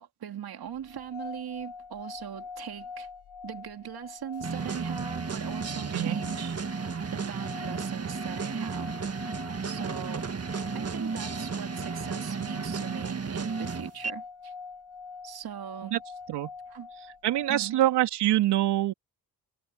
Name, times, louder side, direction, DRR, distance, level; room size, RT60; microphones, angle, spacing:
voice 1, 0.0-3.1 3.4-6.6 7.1-8.9 9.6-10.3 10.7-14.5 15.2-16.0 16.7-16.9 17.5-17.8, right 9 dB, 65° right, 2.5 m, -40 dB
sound 1, 0.8-18.0, left 5 dB, 80° left, 2.4 m, -45 dB
sound 2, 4.4-14.1, right 5 dB, 35° right, 1.8 m, -33 dB
voice 2, 17.2-18.9, right 14 dB, 80° right, 2.9 m, -25 dB
supercardioid pair, 45°, 40 cm